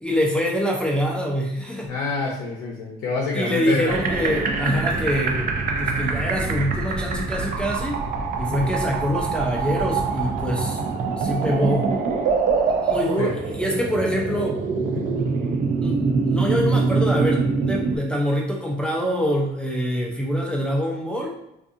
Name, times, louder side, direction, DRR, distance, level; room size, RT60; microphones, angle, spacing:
voice 1, 0.0-1.9 3.3-5.5 5.8-8.0 8.4-10.8 11.2-11.9 12.8-14.6 15.8-21.4, equal, 5° left, -3 dB, 0.4 m, -25 dB
voice 2, 1.9-4.0 4.6-4.8 8.5-8.7 13.2-13.3 14.8-15.1, left 4 dB, 85° left, -2 dB, 0.6 m, -27 dB
sound 1, 3.9-18.0, right 4 dB, 50° right, 0.5 m, -24 dB
2.6 x 2.4 x 2.5 m, 0.84 s
cardioid pair, 110°, 17 cm